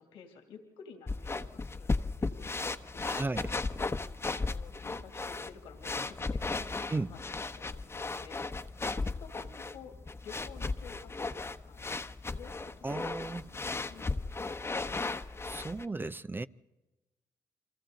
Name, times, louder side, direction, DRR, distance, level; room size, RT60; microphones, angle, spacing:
voice 1, 0.0-4.0 4.4-7.2 7.5-8.8 9.2-10.0 10.2-11.8 12.3-15.2, left 6 dB, 85° left, 2.5 m, -53 dB
sound 1, 1.1-15.8, left 3 dB, 30° left, 1.1 m, -36 dB
voice 2, 3.0-3.5 6.9-7.1 12.8-13.5 15.4-16.5, right 3 dB, 25° right, 0.6 m, -35 dB
29.5 x 23.5 x 3.9 m
supercardioid pair, 50°, 9 cm